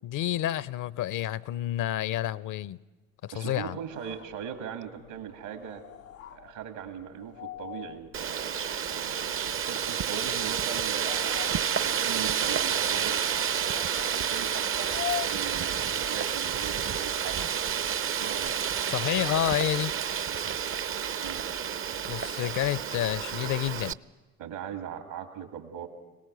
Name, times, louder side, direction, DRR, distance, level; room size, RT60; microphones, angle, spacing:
voice 1, 0.0-2.8 3.2-3.8 18.9-19.9 22.0-24.0, left 12 dB, 50° left, 0.6 m, -29 dB
voice 2, 3.3-5.8 6.3-11.2 11.7-13.2 13.7-17.5 17.9-18.9 21.2-21.4 24.4-25.9, right 8 dB, 75° right, 2.4 m, -40 dB
sound 1, 3.8-16.3, left 11 dB, 90° left, 0.7 m, -44 dB
Wind, 8.1-23.9, right 8 dB, 35° right, 0.6 m, -30 dB
25.0 x 18.0 x 6.8 m
hypercardioid pair, 50°, 39 cm